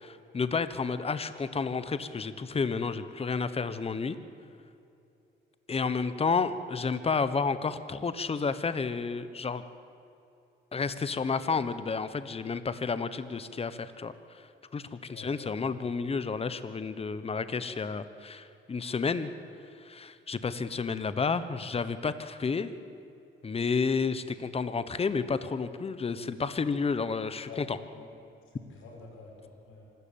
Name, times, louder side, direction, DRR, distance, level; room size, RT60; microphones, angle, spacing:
voice 1, 0.0-4.2 5.7-9.6 10.7-14.5 14.7-19.3 19.8-22.7 23.4-27.8, left 5 dB, 30° left, 12 dB, 1.2 m, -31 dB
voice 2, 15.1-15.7 27.5-27.6 27.9-28.1 28.5-29.8, left 3 dB, 90° left, -1 dB, 6.3 m, -48 dB
26.0 x 13.0 x 8.7 m, 2.7 s
cardioid pair, 90°, 20 cm